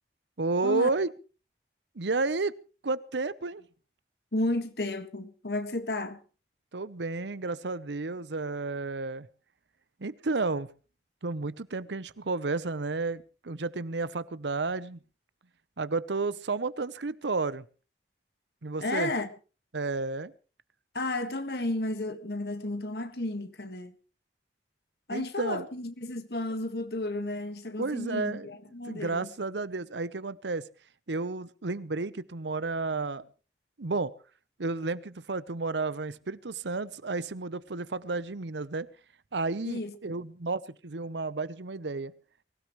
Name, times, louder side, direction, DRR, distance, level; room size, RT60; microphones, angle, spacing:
voice 1, 0.4-1.1 1.9-2.5 2.8-3.6 6.7-9.3 10.0-10.7 11.2-15.0 15.8-17.6 18.6-19.1 19.7-20.3 25.1-25.7 27.8-28.5 28.8-30.6 31.1-33.3 33.8-34.1 34.6-38.9 39.3-42.1, right 3 dB, 85° right, 0.8 m, -32 dB
voice 2, 4.3-6.2 18.8-19.3 20.9-23.9 25.1-29.3 39.7-39.9, left 2 dB, 65° left, 1.7 m, -32 dB
23.5 x 16.5 x 3.1 m
head